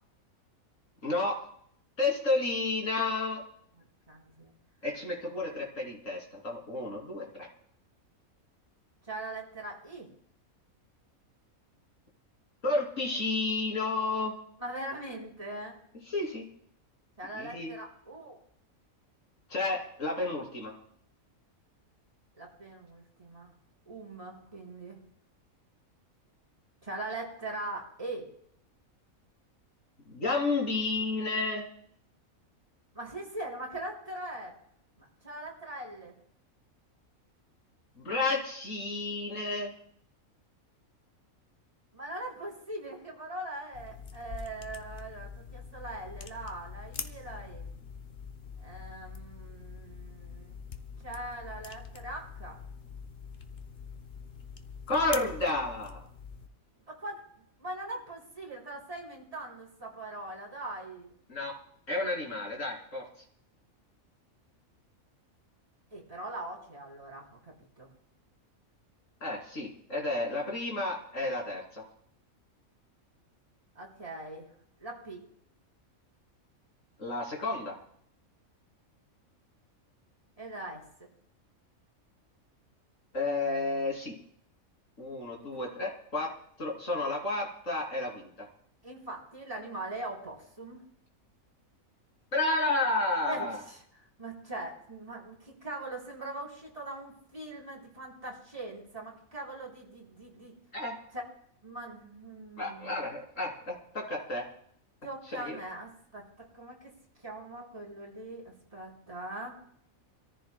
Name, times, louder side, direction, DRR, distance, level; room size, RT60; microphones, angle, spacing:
voice 1, 1.0-1.4 2.0-3.4 4.8-7.5 12.6-14.3 16.1-16.5 17.3-17.8 19.5-20.7 30.1-31.6 38.0-39.7 54.9-56.0 61.3-61.6 61.9-63.1 69.2-71.8 77.0-77.8 83.1-84.1 85.0-86.3 86.6-88.3 92.3-93.6 100.7-101.0 102.6-104.5 105.3-105.6, left 2 dB, 60° left, -1 dB, 3.6 m, -31 dB
voice 2, 4.1-4.5 9.0-10.1 14.6-15.8 17.2-18.4 22.4-23.5 23.9-25.0 26.8-28.3 32.9-34.5 35.0-36.1 41.9-47.7 48.6-50.6 51.0-52.6 56.9-61.1 65.9-67.9 73.8-74.5 74.8-75.2 80.4-81.1 88.8-90.8 93.3-93.8 94.2-100.5 101.6-103.0 105.0-106.2 106.5-106.9 107.2-109.6, right 2 dB, 25° right, -3 dB, 3.8 m, -41 dB
sound 1, 43.7-56.5, left 5 dB, 45° left, 1.0 m, -44 dB
27.0 x 14.0 x 2.3 m, 0.66 s
omnidirectional pair, 1.5 m